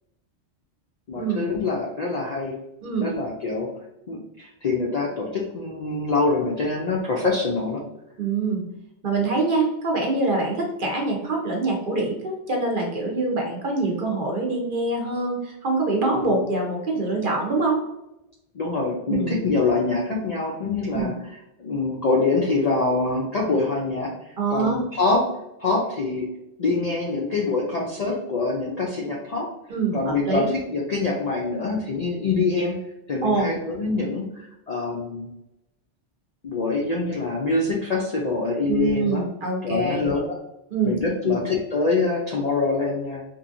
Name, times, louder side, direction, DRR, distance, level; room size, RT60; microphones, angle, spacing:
voice 1, 1.1-2.6 3.0-3.7 4.1-7.8 16.1-16.4 18.5-25.2 25.6-26.3 26.6-29.5 29.9-32.8 33.1-35.3 36.4-39.2 39.6-40.4 40.8-43.2, left 3 dB, 55° left, -3 dB, 0.4 m, -25 dB
voice 2, 8.2-8.6 9.0-17.8 19.1-19.4 20.9-21.1 24.4-24.8 29.7-30.5 33.2-33.5 38.7-40.1 40.7-40.9 41.2-41.4, right 3 dB, 55° right, 0 dB, 0.9 m, -24 dB
2.9 x 2.6 x 2.5 m, 0.88 s
omnidirectional pair, 1.2 m